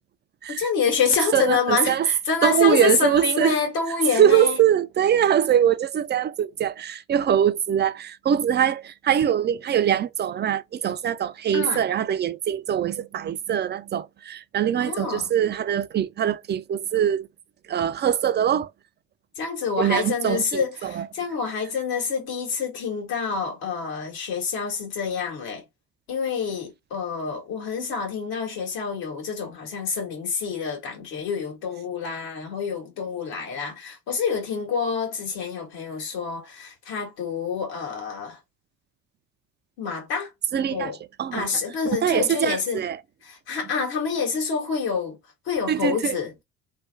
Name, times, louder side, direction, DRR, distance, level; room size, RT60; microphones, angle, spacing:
voice 1, 0.5-4.6 11.5-11.8 14.8-15.3 19.3-25.6 26.1-38.4 39.8-40.3 40.7-41.0 41.3-42.8 43.2-45.2 45.4-46.3, left 6 dB, 70° left, 1.8 m, -27 dB
voice 2, 1.3-2.1 2.4-3.6 4.1-17.3 17.7-18.7 19.8-21.1 40.5-40.9 41.2-41.5 42.0-43.0 45.7-46.2, right 9 dB, 30° right, 0.4 m, -22 dB
3.3 x 2.1 x 3.3 m
supercardioid pair, 75°, 38 cm